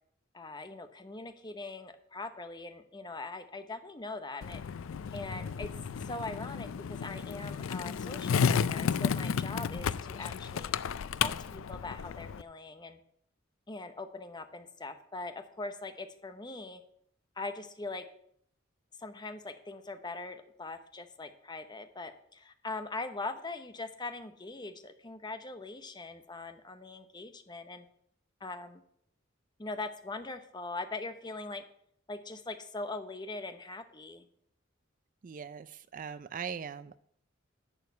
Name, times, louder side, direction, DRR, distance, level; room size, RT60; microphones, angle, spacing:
voice 1, 0.3-4.6 5.1-5.7 6.0-10.7 11.2-13.0 13.7-16.8 17.4-18.0 19.0-27.9 28.4-28.8 29.6-31.6 32.1-34.2, left 3 dB, 20° left, 8 dB, 0.8 m, -41 dB
Skateboard, 4.4-12.4, left 6 dB, 85° left, 0.4 m, -33 dB
voice 2, 35.2-37.0, right 7 dB, 40° right, 15 dB, 0.4 m, -40 dB
11.0 x 4.9 x 8.1 m, 0.68 s
head